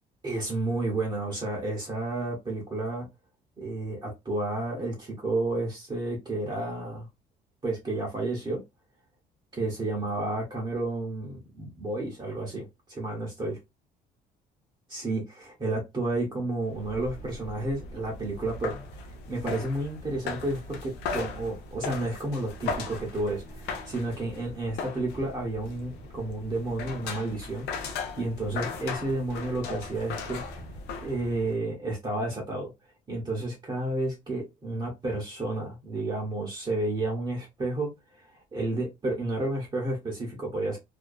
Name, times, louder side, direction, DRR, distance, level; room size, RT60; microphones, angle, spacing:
voice 1, 0.2-3.1 3.6-7.1 7.6-8.6 9.5-13.6 14.9-18.8 19.3-30.4 31.0-32.7 33.1-40.8, right 2 dB, 25° right, 0.8 m, -31 dB
sound 1, 16.7-31.6, left 4 dB, 80° left, 0.6 m, -38 dB
2.5 x 2.2 x 2.2 m
cardioid pair, 110°, 17 cm